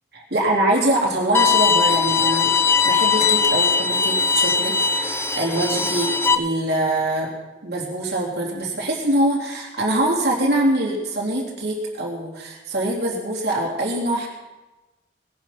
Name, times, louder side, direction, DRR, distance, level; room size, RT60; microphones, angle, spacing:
voice 1, 0.1-2.5 2.8-7.3 7.6-14.3, right 1 dB, 65° right, -2 dB, 3.5 m, -23 dB
Bowed string instrument, 1.3-6.3, left 5 dB, 15° left, 0.6 m, -19 dB
20.5 x 10.5 x 4.3 m, 1.1 s
head